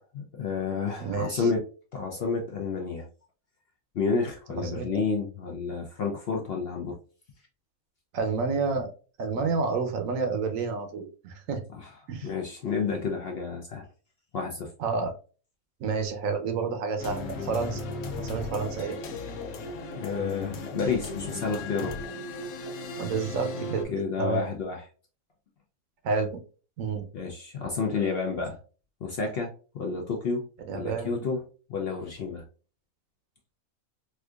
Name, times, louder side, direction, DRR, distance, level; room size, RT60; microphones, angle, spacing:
voice 1, 0.0-1.7 1.9-3.1 3.9-7.0 9.3-9.5 11.8-11.9 12.2-13.8 14.3-14.7 20.0-22.0 23.9-24.9 27.1-28.6 29.0-30.4 30.7-31.4 31.7-32.4, left 5 dB, 60° left, 1 dB, 0.6 m, -30 dB
voice 2, 1.0-1.4 4.6-4.9 8.1-8.9 9.2-11.6 12.1-12.3 14.8-15.1 15.8-17.9 18.2-19.0 23.0-23.9 24.2-24.5 26.0-26.4 26.8-27.0 30.7-31.3, right 4 dB, 70° right, 6 dB, 1.0 m, -29 dB
sound 1, 17.0-23.8, left 3 dB, 80° left, 1.1 m, -36 dB
4.4 x 2.4 x 2.3 m, 0.37 s
omnidirectional pair, 1.5 m